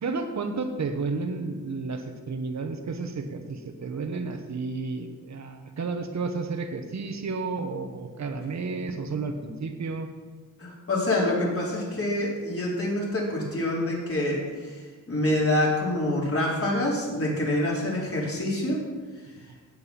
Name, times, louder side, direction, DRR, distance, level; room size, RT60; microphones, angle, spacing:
voice 1, 0.0-10.1 19.5-19.6, right 4 dB, 50° right, 5 dB, 1.3 m, -32 dB
voice 2, 10.6-14.8 15.1-18.8, left 1 dB, 40° left, -4 dB, 4.2 m, -26 dB
17.5 x 8.0 x 5.5 m, 1.4 s
wide cardioid pair, 115°, 35 cm